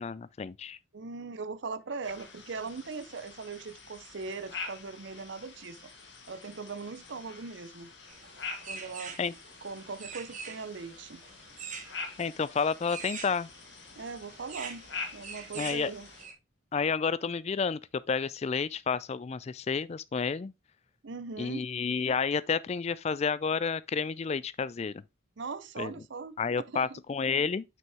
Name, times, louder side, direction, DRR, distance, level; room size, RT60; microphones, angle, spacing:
voice 1, 0.0-0.8 9.2-9.3 12.2-13.5 15.5-15.9 16.7-20.5 21.4-25.0 25.8-25.9 26.4-27.6, left 5 dB, 30° left, 0.3 m, -30 dB
voice 2, 0.9-5.8 6.3-7.9 8.6-9.1 9.6-11.2 14.0-16.1 21.0-21.6 25.4-26.4 26.7-27.0, right 4 dB, 55° right, 0.6 m, -40 dB
sound 1, 2.0-16.3, left 4 dB, 55° left, 1.8 m, -46 dB
sound 2, 8.1-16.3, right 5 dB, 35° right, 1.3 m, -45 dB
6.1 x 5.4 x 3.4 m
head